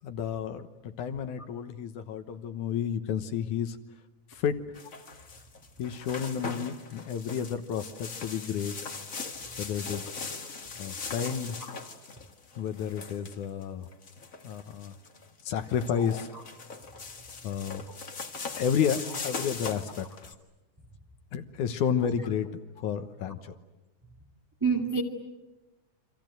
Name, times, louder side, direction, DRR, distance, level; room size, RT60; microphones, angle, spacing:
voice 1, 0.0-3.8 4.3-4.6 5.8-8.8 9.6-10.1 10.8-11.6 12.6-13.9 14.4-14.9 15.5-16.3 17.4-17.9 18.6-20.4 21.3-22.5 22.8-23.6, left 8 dB, 75° left, 2.6 m, -31 dB
sound 1, 4.7-20.3, left 4 dB, 30° left, 1.7 m, -40 dB
voice 2, 16.0-16.4 17.9-18.0 24.6-25.0, right 5 dB, 5° right, 1.9 m, -30 dB
29.0 x 25.0 x 7.9 m
omnidirectional pair, 3.6 m